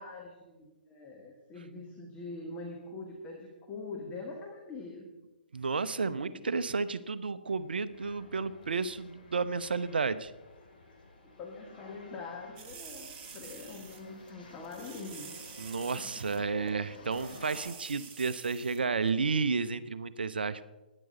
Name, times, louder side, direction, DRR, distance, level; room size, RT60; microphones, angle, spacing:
voice 1, 0.0-5.1 6.2-6.6 11.2-15.3 15.9-16.5, left 3 dB, 20° left, 0 dB, 1.6 m, -44 dB
voice 2, 5.5-10.3 15.6-20.6, right 4 dB, 65° right, 14 dB, 0.6 m, -32 dB
sound 1, 7.6-17.7, left 3 dB, 60° left, 3.1 m, -53 dB
sound 2, 12.6-14.0 14.3-14.4 14.6-16.4 16.7-16.8 17.0-18.8 19.1-19.2, right 6 dB, 30° right, 1.6 m, -48 dB
12.5 x 9.9 x 5.3 m, 1.1 s
figure-of-eight pair, 130°, 6 cm